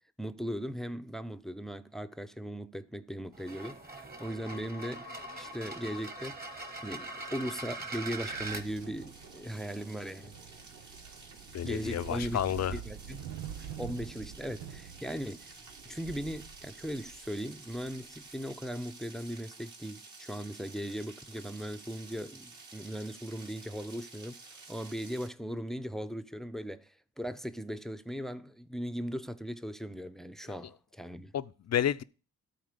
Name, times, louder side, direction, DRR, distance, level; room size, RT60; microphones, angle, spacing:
voice 1, 0.2-6.4 6.8-10.4 11.6-12.4 12.7-13.2 13.8-15.5 15.9-31.3, equal, ahead, 0.7 m, -38 dB
sound 1, 3.3-8.6, right 2 dB, 25° right, 1.7 m, -41 dB
sound 2, 8.3-18.5, right 9 dB, 90° right, 0.8 m, -47 dB
sound 3, 8.5-25.3, right 3 dB, 55° right, 2.8 m, -52 dB
voice 2, 11.5-12.8 30.5-30.7 31.3-32.0, left 10 dB, 45° left, 0.6 m, -31 dB
13.0 x 4.3 x 6.8 m
cardioid pair, 65°, 36 cm